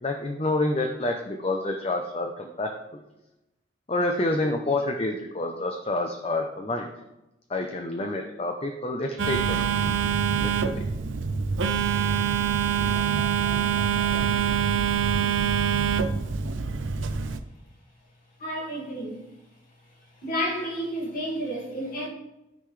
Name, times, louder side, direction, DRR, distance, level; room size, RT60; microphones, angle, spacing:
voice 1, 0.0-3.0 3.9-6.9 7.5-10.0 10.4-10.8, left 2 dB, 30° left, 3 dB, 0.7 m, -28 dB
Telephone, 9.2-17.4, right 7 dB, 80° right, 0.6 m, -25 dB
voice 2, 18.4-19.2 20.2-22.1, equal, 45° left, -2 dB, 2.3 m, -31 dB
13.0 x 5.7 x 3.3 m, 0.94 s
head